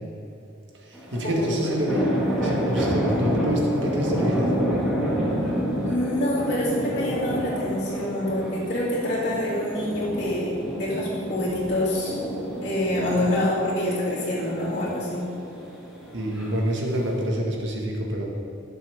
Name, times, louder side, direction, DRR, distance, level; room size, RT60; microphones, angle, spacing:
voice 1, 0.8-2.1 2.4-4.5 16.1-18.3, equal, 65° right, -1 dB, 1.9 m, -27 dB
sound 1, 0.9-17.3, equal, ahead, 2.5 m, -29 dB
voice 2, 1.4-1.8 5.8-12.2 12.6-15.2, left 1 dB, 50° left, -13 dB, 2.7 m, -26 dB
17.0 x 6.9 x 3.7 m, 2.7 s
head